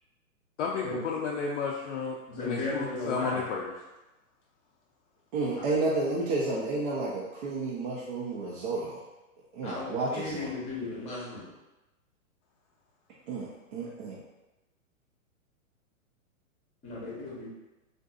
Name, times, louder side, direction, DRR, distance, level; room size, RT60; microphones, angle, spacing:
voice 1, 0.6-3.6, left 5 dB, 60° left, -2 dB, 0.5 m, -32 dB
voice 2, 2.3-3.4 9.6-11.5 16.8-17.5, left 2 dB, 15° left, -6 dB, 0.8 m, -35 dB
voice 3, 5.3-9.0 9.5-10.5 13.3-14.2, right 3 dB, 40° right, -6 dB, 0.6 m, -31 dB
3.8 x 2.6 x 2.4 m, 1.0 s
hypercardioid pair, 145°, 41 cm